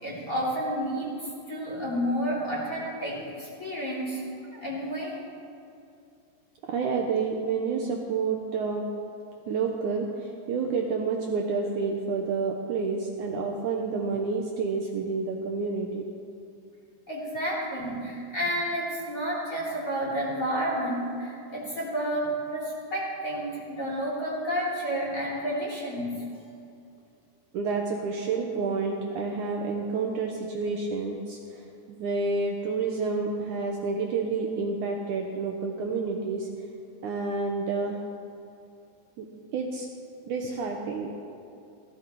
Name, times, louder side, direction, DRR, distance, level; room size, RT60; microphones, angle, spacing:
voice 1, 0.0-4.2 4.5-5.1 17.1-26.1, equal, 20° left, -6 dB, 3.3 m, -30 dB
voice 2, 6.7-8.8 9.5-16.0 27.5-36.5 37.0-38.0 39.2-39.3 39.5-39.9 40.3-41.1, right 4 dB, 90° right, 1 dB, 1.7 m, -29 dB
16.5 x 14.5 x 4.6 m, 2.6 s
omnidirectional pair, 4.9 m